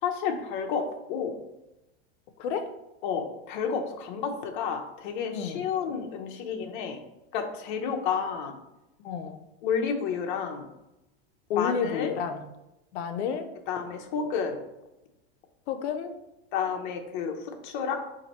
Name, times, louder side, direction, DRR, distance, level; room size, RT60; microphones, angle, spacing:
voice 1, 0.0-1.4 3.0-7.0 7.3-8.6 9.6-10.7 11.5-12.1 13.7-14.6 16.5-18.0, left 6 dB, 50° left, 3 dB, 0.6 m, -30 dB
voice 2, 2.4-2.7 5.3-5.6 9.0-9.4 11.5-12.4 12.9-13.5 15.7-16.1, left 7 dB, 90° left, 7 dB, 0.6 m, -30 dB
4.2 x 2.6 x 4.0 m, 0.94 s
supercardioid pair, 170°, 32 cm